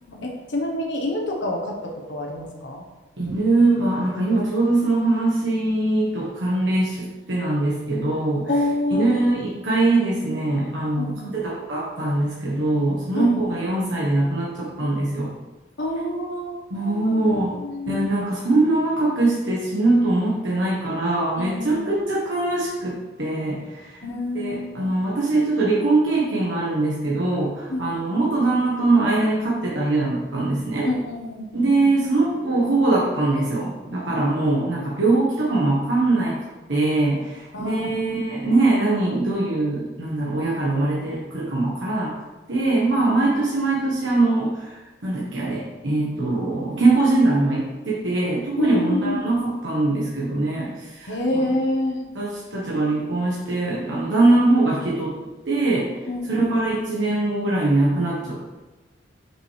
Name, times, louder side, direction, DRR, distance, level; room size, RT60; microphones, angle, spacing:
voice 1, 0.0-2.8 8.5-9.2 10.9-11.3 13.1-13.4 15.8-18.1 21.4-21.9 24.0-24.8 27.7-27.9 30.8-31.7 34.4-34.9 37.5-38.1 43.0-43.2 48.6-49.3 51.1-52.0 56.1-56.7, left 1 dB, 70° left, 0 dB, 1.1 m, -27 dB
voice 2, 3.2-7.0 7.3-8.5 8.9-15.3 16.7-17.5 17.9-24.0 24.3-30.9 31.5-36.4 36.7-42.1 42.5-51.4 52.1-55.1 55.5-55.9 56.3-58.6, right 2 dB, 75° right, -5 dB, 1.2 m, -22 dB
6.0 x 5.5 x 3.3 m, 1.2 s
head